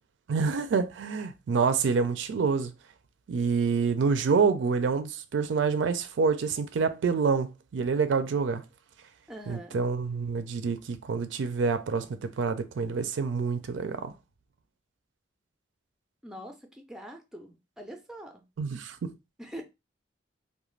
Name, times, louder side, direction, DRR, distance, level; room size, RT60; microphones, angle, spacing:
voice 1, 0.3-2.7 3.3-8.6 9.5-14.1 18.6-19.2, right 5 dB, 80° right, 0.4 m, -27 dB
voice 2, 9.3-9.8 16.2-18.4 19.4-19.6, equal, 5° right, 0.4 m, -43 dB
2.4 x 2.2 x 3.1 m
head